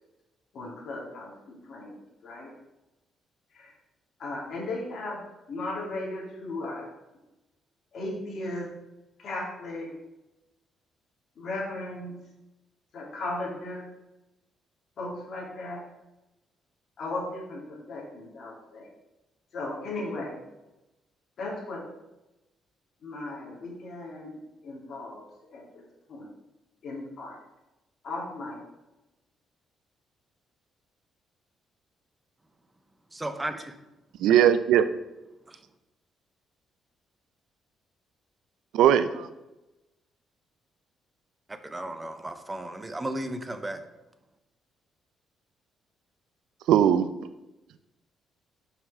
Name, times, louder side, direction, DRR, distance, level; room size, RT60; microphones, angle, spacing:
voice 1, 0.5-1.9 2.2-2.5 3.5-3.8 4.2-5.2 5.5-6.9 7.9-8.7 9.2-9.9 11.3-12.1 12.9-13.9 15.0-15.8 17.0-18.9 19.5-20.4 21.4-21.9 23.0-25.2 25.5-26.3 26.8-27.4 28.0-28.6, left 2 dB, 60° left, -3 dB, 2.7 m, -36 dB
voice 2, 33.1-33.8 35.5-35.6 41.5-43.8, right 1 dB, 15° right, 9 dB, 0.8 m, -34 dB
voice 3, 34.2-34.9 38.7-39.3 46.7-47.1, right 10 dB, 85° right, 12 dB, 0.5 m, -19 dB
5.9 x 5.7 x 4.9 m, 0.99 s
cardioid pair, 90°, 0 cm